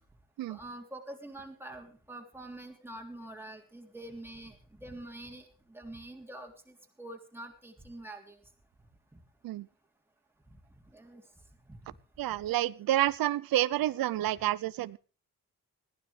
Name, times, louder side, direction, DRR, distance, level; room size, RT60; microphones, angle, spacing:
voice 1, 0.5-8.4 9.1-9.2 10.5-10.6 10.9-11.2, right 1 dB, 5° right, 2 dB, 3.3 m, -46 dB
voice 2, 12.2-15.0, right 14 dB, 90° right, 17 dB, 0.6 m, -29 dB
21.0 x 15.5 x 3.3 m, 0.35 s
wide cardioid pair, 145°, 34 cm